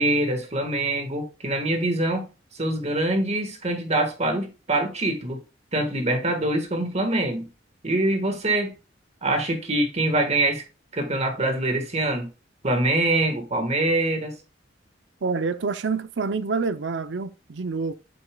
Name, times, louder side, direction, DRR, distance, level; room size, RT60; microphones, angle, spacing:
voice 1, 0.0-5.4 5.7-7.5 7.8-8.7 9.2-10.6 10.9-12.3 12.6-14.3, right 1 dB, 35° right, 1.6 m, -24 dB
voice 2, 15.2-17.9, right 4 dB, 70° right, 0.6 m, -27 dB
8.4 x 6.9 x 2.3 m
head